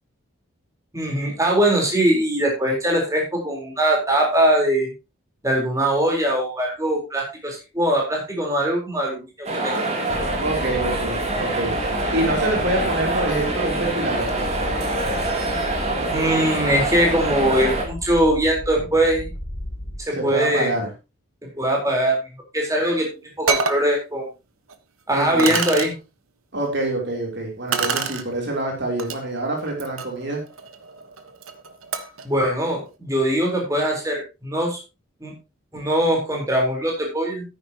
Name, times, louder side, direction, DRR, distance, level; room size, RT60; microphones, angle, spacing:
voice 1, 0.9-4.9 5.4-9.7 16.1-19.3 20.1-20.7 21.6-22.2 22.5-23.1 23.4-24.3 25.1-25.9 32.2-34.8 35.2-35.3 35.7-37.4, right 1 dB, 15° right, 0 dB, 4.2 m, -21 dB
sound 1, 9.4-17.8, right 2 dB, 30° right, 3.1 m, -25 dB
sound 2, 10.1-20.0, left 1 dB, 50° left, 3.2 m, -34 dB
voice 2, 10.4-11.7 12.1-14.7 20.1-20.9 25.1-25.5 26.5-30.4, right 2 dB, 55° right, 0 dB, 3.5 m, -26 dB
sound 3, 22.9-23.0 23.5-23.8 24.7-24.8 25.4-25.9 27.7-28.2 29.0-29.2 29.7-32.2, right 5 dB, 80° right, 1.3 m, -27 dB
13.0 x 10.0 x 3.0 m, 0.27 s
head